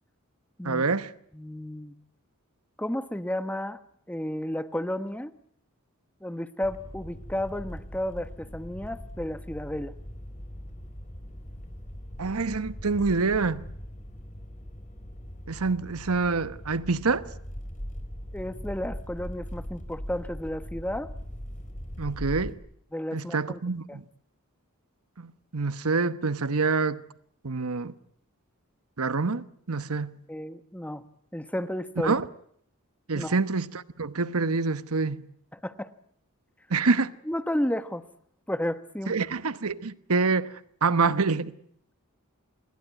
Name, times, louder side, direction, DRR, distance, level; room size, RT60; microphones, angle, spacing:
voice 1, 0.6-1.1 12.2-13.7 15.5-17.3 22.0-22.6 23.1-24.0 25.2-27.0 27.4-27.9 29.0-30.2 32.0-32.3 33.1-35.2 36.7-37.1 39.1-40.5 40.8-41.5, right 4 dB, 75° right, 1.1 m, -26 dB
voice 2, 1.3-1.9 2.8-3.8 4.1-5.3 6.2-9.9 18.3-21.1 22.9-23.6 23.9-24.0 30.3-31.0 31.3-32.1 33.1-33.3 35.5-35.9 37.3-38.0 38.5-39.1, left 1 dB, 5° left, 1.1 m, -32 dB
sound 1, 6.6-22.5, equal, 35° left, 4.6 m, -40 dB
26.5 x 22.0 x 9.4 m
head